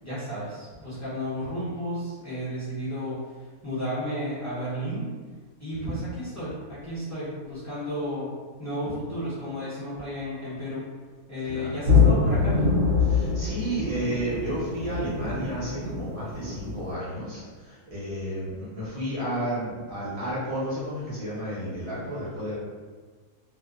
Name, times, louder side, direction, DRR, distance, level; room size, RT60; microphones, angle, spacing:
voice 1, 0.0-5.1 5.6-8.3 8.6-10.8 11.3-12.7, equal, 15° left, -12 dB, 0.5 m, -33 dB
sound 1, 11.9-16.9, left 4 dB, 80° right, 1.1 m, -24 dB
voice 2, 13.1-22.5, right 1 dB, 35° right, -10 dB, 0.6 m, -32 dB
2.7 x 2.0 x 2.3 m, 1.4 s
omnidirectional pair, 1.5 m